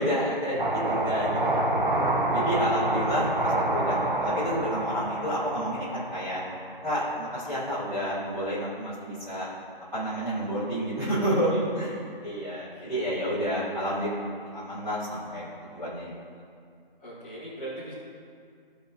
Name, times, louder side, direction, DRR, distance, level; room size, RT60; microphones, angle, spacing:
voice 1, 0.0-1.7 2.3-6.4 6.8-9.5 9.9-11.5 11.7-11.9 12.2-14.1 14.5-16.2, equal, 5° right, -22 dB, 1.0 m, -30 dB
sound 1, 0.6-7.1, right 1 dB, 55° right, 1.0 m, -27 dB
voice 2, 13.3-13.9 17.0-17.9, right 1 dB, 10° left, -10 dB, 1.4 m, -41 dB
14.5 x 4.8 x 2.6 m, 2.3 s
figure-of-eight pair, 160°, 30 cm